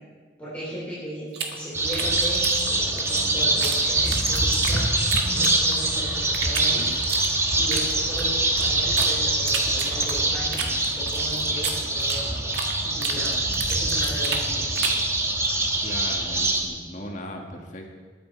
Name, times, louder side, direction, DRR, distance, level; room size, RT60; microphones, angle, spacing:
voice 1, 0.4-4.9 5.2-6.9 7.6-12.4 12.8-13.4 13.7-15.0, equal, 10° left, -9 dB, 3.7 m, -36 dB
sound 1, 1.3-3.8 4.1-5.9 6.3-9.1 9.5-12.7 13.0-15.1, right 6 dB, 65° right, 1.6 m, -32 dB
sound 2, 1.7-16.6, right 2 dB, 15° right, 1.3 m, -24 dB
Insect, 1.7-1.8 2.1-2.3 2.6-2.8 3.1-3.3 3.5-3.8 4.0-4.3 4.5-6.0, right 6 dB, 40° right, 1.5 m, -36 dB
voice 2, 15.7-17.9, left 1 dB, 45° left, 2 dB, 1.9 m, -38 dB
20.0 x 9.1 x 4.7 m, 1.5 s
head